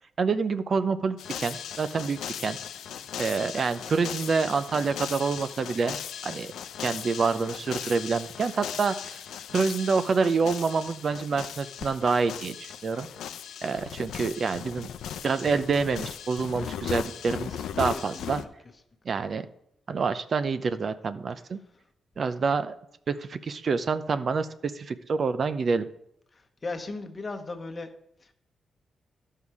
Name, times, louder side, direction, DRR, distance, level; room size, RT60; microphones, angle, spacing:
voice 1, 0.2-2.6 3.2-6.0 6.2-6.5 6.8-9.2 9.5-13.1 13.6-14.9 15.2-18.4 19.1-19.5 19.9-21.6 22.2-22.7 23.1-25.9, right 4 dB, 50° right, 11 dB, 0.5 m, -27 dB
sound 1, 1.2-18.5, left 9 dB, 85° left, 0.5 m, -38 dB
voice 2, 17.9-18.3 26.3-27.9 28.2-28.3, left 3 dB, 35° left, 6 dB, 1.1 m, -37 dB
12.0 x 5.6 x 4.8 m, 0.75 s
cardioid pair, 90°, 0 cm